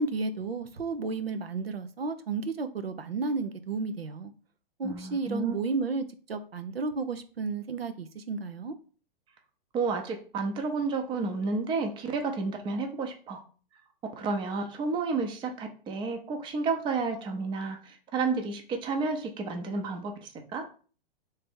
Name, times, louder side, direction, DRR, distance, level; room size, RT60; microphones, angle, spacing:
voice 1, 0.0-4.3 4.8-8.8, right 4 dB, 85° right, 0.6 m, -32 dB
voice 2, 4.8-5.5 9.7-13.4 14.2-20.7, right 4 dB, 15° right, 0.6 m, -31 dB
3.3 x 3.3 x 4.3 m
figure-of-eight pair, 115°, 29 cm